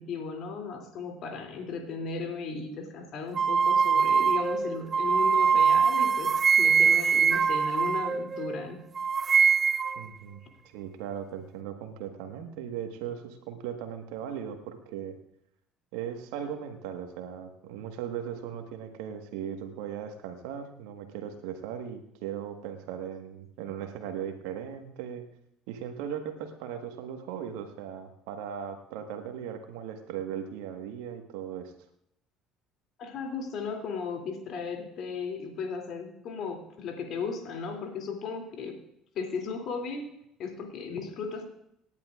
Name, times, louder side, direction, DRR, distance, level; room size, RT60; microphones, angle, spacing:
voice 1, 0.0-6.3 6.6-8.8 33.0-38.8 39.1-40.1 40.4-41.5, left 5 dB, 55° left, 3 dB, 2.8 m, -36 dB
sound 1, 3.4-8.6 9.0-10.0, right 6 dB, 35° right, 0.4 m, -23 dB
voice 2, 9.9-10.4 10.7-15.2 15.9-25.2 25.7-31.7, right 9 dB, 70° right, 6 dB, 1.5 m, -38 dB
26.5 x 10.5 x 2.5 m, 0.78 s
hypercardioid pair, 60°, 0 cm